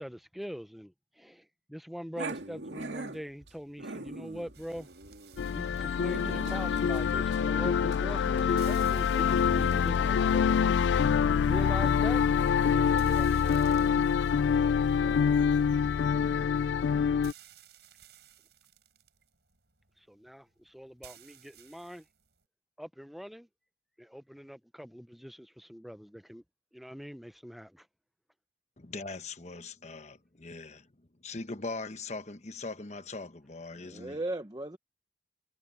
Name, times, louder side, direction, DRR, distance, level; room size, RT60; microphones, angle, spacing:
voice 1, 0.0-4.9 5.5-10.8 11.4-12.2 12.6-13.9 20.0-22.0 22.8-23.5 24.0-26.4 26.7-27.9, equal, ahead, 0.6 m, -42 dB
Growling, 2.2-9.8, right 2 dB, 90° right, 2.2 m, -43 dB
sound 1, 4.5-22.4, right 10 dB, 70° right, 5.4 m, -58 dB
sound 2, 5.4-17.3, left 7 dB, 85° left, 0.3 m, -26 dB
voice 2, 15.0-15.4 33.7-34.8, right 2 dB, 25° right, 0.9 m, -38 dB
voice 3, 28.8-34.2, left 3 dB, 40° left, 1.2 m, -41 dB
head